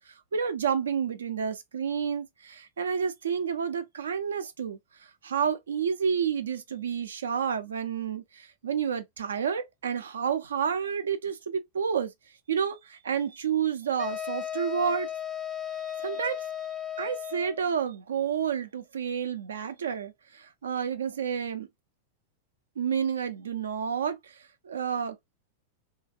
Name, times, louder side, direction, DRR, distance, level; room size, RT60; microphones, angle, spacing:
voice 1, 0.3-4.8 5.2-12.1 12.5-15.1 15.8-16.4 17.0-21.7 22.8-24.4 24.6-25.2, right 7 dB, 65° right, 0.5 m, -30 dB
sound 1, 14.0-17.7, left 10 dB, 20° left, 0.4 m, -35 dB
3.1 x 2.4 x 2.6 m
figure-of-eight pair, 90°, 0 cm